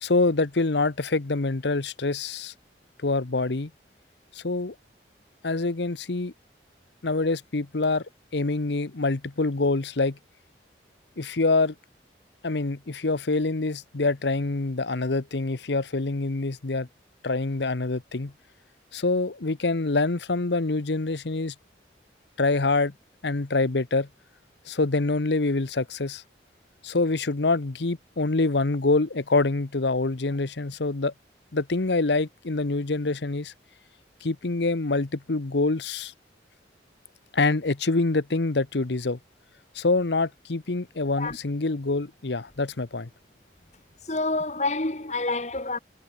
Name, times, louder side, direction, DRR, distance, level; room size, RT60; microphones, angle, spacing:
voice 1, 0.0-2.5 3.0-3.7 4.3-4.7 5.4-6.3 7.0-8.0 8.3-10.2 11.2-11.7 12.4-16.9 17.2-18.3 18.9-21.5 22.4-22.9 23.2-24.1 24.7-26.2 26.8-31.1 31.5-33.5 34.2-36.1 37.3-39.2 39.7-43.1, left 3 dB, 75° left, 1.0 m, -25 dB
voice 2, 44.0-45.8, left 2 dB, 40° left, 1.9 m, -28 dB
head